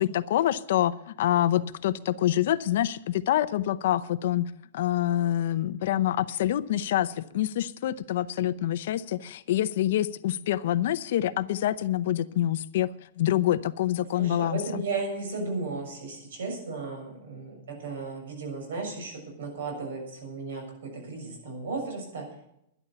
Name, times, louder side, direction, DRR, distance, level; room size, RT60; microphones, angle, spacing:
voice 1, 0.0-12.9 13.2-14.8, left 12 dB, 50° left, 0.7 m, -26 dB
voice 2, 14.1-22.2, right 3 dB, 85° right, 6.9 m, -35 dB
12.0 x 11.0 x 6.9 m
supercardioid pair, 180°, 0 cm